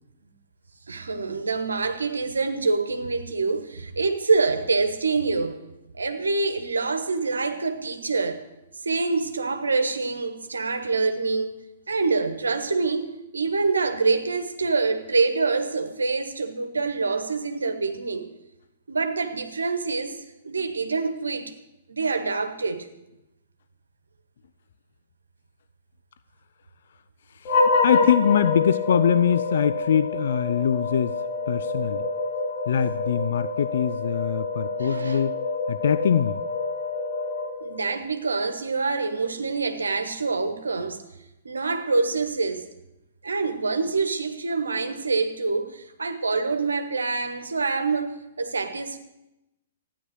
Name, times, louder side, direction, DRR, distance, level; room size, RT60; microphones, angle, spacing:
voice 1, 0.9-5.6 5.9-8.4 8.8-11.5 11.9-13.1 13.3-18.3 18.9-20.2 20.4-21.5 21.9-22.9 34.8-35.2 37.6-41.0 41.4-42.7 43.2-49.0, right 4 dB, 75° right, 8 dB, 1.2 m, -26 dB
voice 2, 27.4-31.2 31.5-32.1 32.7-35.4 35.7-36.4, left 8 dB, 60° left, 14 dB, 0.4 m, -23 dB
sound 1, 27.4-38.0, left 3 dB, 40° left, 2.3 m, -27 dB
13.5 x 9.8 x 7.8 m, 0.92 s
figure-of-eight pair, 115°, 0 cm